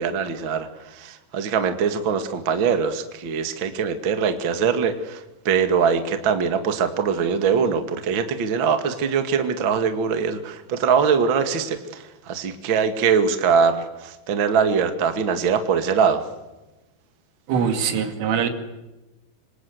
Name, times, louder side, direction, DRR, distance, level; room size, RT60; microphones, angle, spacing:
voice 1, 0.0-16.2, right 6 dB, 50° right, 7 dB, 1.5 m, -22 dB
voice 2, 17.5-18.5, right 7 dB, 80° right, 7 dB, 4.9 m, -22 dB
26.0 x 26.0 x 8.1 m, 1.0 s
omnidirectional pair, 5.6 m